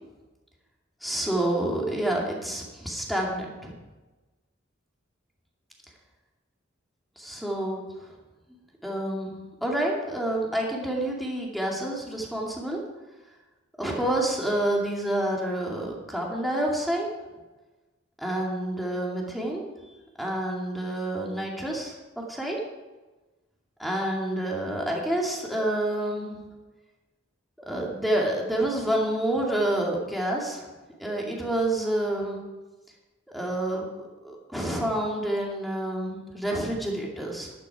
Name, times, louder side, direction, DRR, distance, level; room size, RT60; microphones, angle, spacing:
voice 1, 1.0-3.7 7.2-8.1 8.8-9.3 9.6-12.8 13.8-17.1 18.2-19.6 20.2-22.6 23.8-26.4 27.7-30.7 31.0-32.4 33.3-37.5, right 1 dB, ahead, -2 dB, 2.4 m, -28 dB
12.0 x 11.0 x 4.8 m, 1.2 s
head